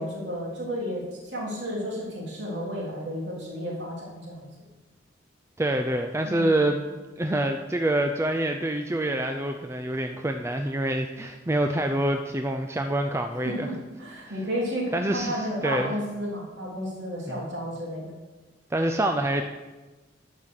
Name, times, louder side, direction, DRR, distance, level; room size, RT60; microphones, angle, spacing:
voice 1, 0.0-4.5 6.2-6.5 13.4-18.1, equal, 60° right, -4 dB, 3.5 m, -32 dB
voice 2, 5.6-6.9 7.2-13.7 14.9-15.9 17.2-17.4 18.7-19.4, right 1 dB, 15° right, 5 dB, 0.4 m, -26 dB
11.0 x 5.9 x 6.6 m, 1.2 s
head